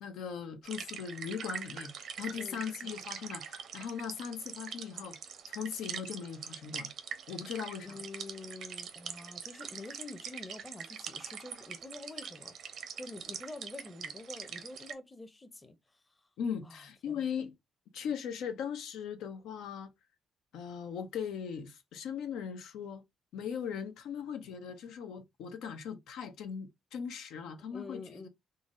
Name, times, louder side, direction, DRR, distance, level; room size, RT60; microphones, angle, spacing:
voice 1, 0.0-5.2 5.5-6.9 7.3-8.0 16.4-17.5 17.9-19.9 20.5-23.0 23.3-28.3, left 7 dB, 85° left, 0.7 m, -39 dB
sound 1, 0.6-14.9, right 7 dB, 70° right, 0.7 m, -43 dB
voice 2, 7.8-12.5 13.0-15.8 16.6-17.1 27.7-28.3, left 2 dB, 20° left, 0.7 m, -47 dB
3.9 x 2.1 x 3.6 m
cardioid pair, 90°, 0 cm